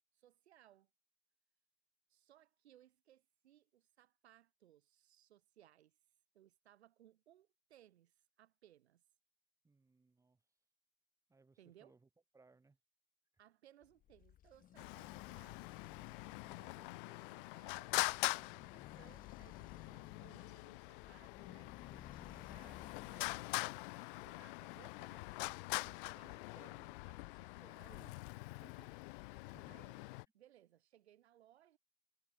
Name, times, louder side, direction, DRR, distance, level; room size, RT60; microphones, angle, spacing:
voice 1, 0.1-0.9 2.1-6.0 6.3-9.0 11.6-12.0 13.4-15.6 16.5-28.2 28.6-29.2 29.7-31.8, right 12 dB, 90° right, 5.8 m, -66 dB
voice 2, 9.6-10.4 11.3-12.0 12.3-12.8 27.9-28.1 29.5-29.8, right 3 dB, 10° right, 7.2 m, -67 dB
sound 1, 13.8-23.5, left 11 dB, 25° left, 1.7 m, -58 dB
Traffic noise roadway noise, 14.8-30.3, left 25 dB, 55° left, 0.7 m, -44 dB
supercardioid pair, 135°, 32 cm